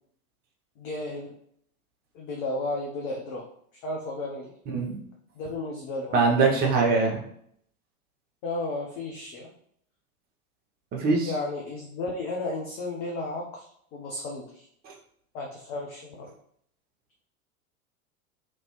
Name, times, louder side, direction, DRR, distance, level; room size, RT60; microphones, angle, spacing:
voice 1, 0.8-1.3 2.1-3.5 3.8-4.5 5.3-6.3 8.4-9.5 11.2-14.7 15.3-16.3, left 2 dB, 35° left, -1 dB, 0.6 m, -33 dB
voice 2, 6.1-7.2 10.9-11.3 14.9-15.0, right 4 dB, 20° right, 0 dB, 0.7 m, -22 dB
2.9 x 2.6 x 3.0 m, 0.67 s
figure-of-eight pair, 90°, 44 cm